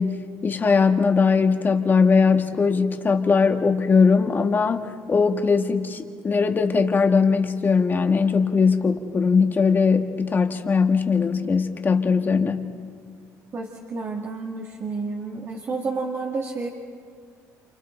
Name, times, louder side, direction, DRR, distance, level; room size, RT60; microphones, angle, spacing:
voice 1, 0.0-12.7, left 5 dB, 30° left, 5 dB, 1.7 m, -20 dB
voice 2, 13.5-16.7, right 4 dB, 40° right, -1 dB, 2.1 m, -30 dB
29.5 x 28.0 x 4.5 m, 2.1 s
cardioid pair, 110°, 7 cm